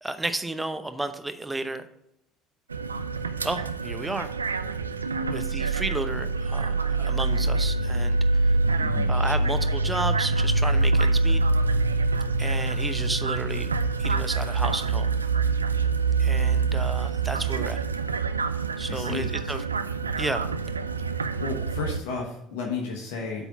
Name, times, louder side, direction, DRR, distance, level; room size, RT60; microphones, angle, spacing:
voice 1, 0.0-1.9 3.4-4.3 5.3-8.2 9.1-11.4 12.4-13.7 14.0-15.1 16.2-17.8 18.8-19.6 20.2-20.5, right 2 dB, 10° right, 9 dB, 0.8 m, -32 dB
sound 1, 2.7-22.0, right 3 dB, 90° right, 0.3 m, -25 dB
voice 2, 8.7-9.1 17.3-17.7 18.4-19.4 21.4-23.5, left 4 dB, 70° left, 0 dB, 1.2 m, -34 dB
8.1 x 4.0 x 6.0 m, 0.80 s
figure-of-eight pair, 60°, 0 cm